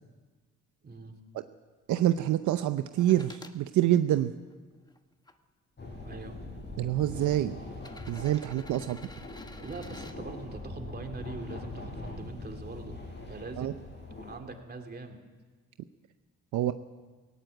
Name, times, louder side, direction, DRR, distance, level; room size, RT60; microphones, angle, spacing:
voice 1, 0.8-1.2 6.0-6.4 9.6-13.0 13.3-13.8 14.2-15.2, right 3 dB, 30° right, 4 dB, 2.9 m, -42 dB
voice 2, 1.9-4.3 6.8-7.6 8.1-9.0 13.6-13.7 16.5-16.7, right 13 dB, 75° right, 10 dB, 0.7 m, -26 dB
sound 1, 3.0-3.6 4.3-5.3 6.3-6.4 7.7-10.2 12.1-12.2, left 2 dB, 15° left, 1.3 m, -50 dB
sound 2, 5.8-14.4, left 2 dB, 35° left, 6.5 m, -42 dB
17.5 x 16.5 x 9.0 m, 1.3 s
cardioid pair, 90°, 30 cm